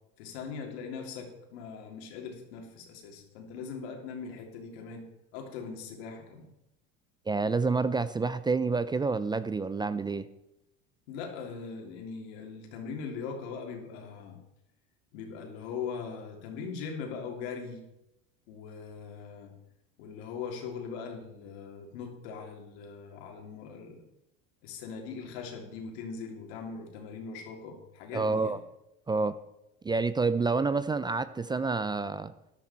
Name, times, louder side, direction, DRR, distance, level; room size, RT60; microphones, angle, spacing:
voice 1, 0.2-6.5 11.1-14.4 15.1-17.8 18.5-19.5 20.0-24.0 24.6-28.6, left 5 dB, 85° left, 3.3 m, -40 dB
voice 2, 7.3-10.3 28.1-28.6 29.1-29.4 29.8-32.3, right 4 dB, 15° right, 0.4 m, -28 dB
13.0 x 12.0 x 4.4 m
supercardioid pair, 115°, 32 cm